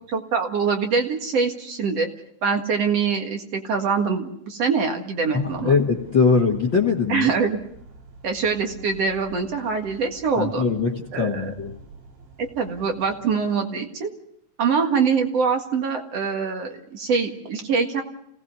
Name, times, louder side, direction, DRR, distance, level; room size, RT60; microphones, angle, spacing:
voice 1, 0.1-2.1 2.4-5.7 7.1-7.6 8.2-10.7 11.1-11.5 12.4-14.1 14.6-18.0, right 5 dB, 50° right, 4 dB, 2.5 m, -24 dB
voice 2, 5.3-7.3 10.4-11.7, left 5 dB, 45° left, 3 dB, 1.8 m, -21 dB
sound 1, 5.4-13.4, right 3 dB, 75° right, 6.5 m, -46 dB
27.5 x 18.5 x 6.9 m, 0.72 s
omnidirectional pair, 4.0 m